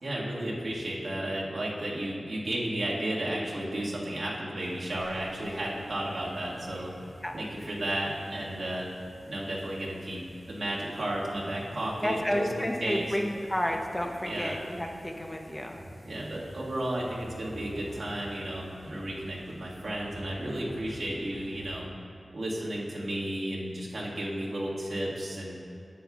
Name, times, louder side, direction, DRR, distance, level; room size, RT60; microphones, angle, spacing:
voice 1, 0.0-6.9 7.3-8.9 9.3-10.2 10.5-13.1 14.3-14.5 16.1-21.9 22.3-25.6, right 1 dB, 70° right, -5 dB, 1.6 m, -33 dB
sound 1, 4.6-21.8, equal, 15° right, 1.7 m, -49 dB
voice 2, 7.2-7.8 12.0-15.8, equal, 15° left, 2 dB, 0.7 m, -31 dB
11.0 x 8.4 x 2.3 m, 2.7 s
wide cardioid pair, 95°, 0 cm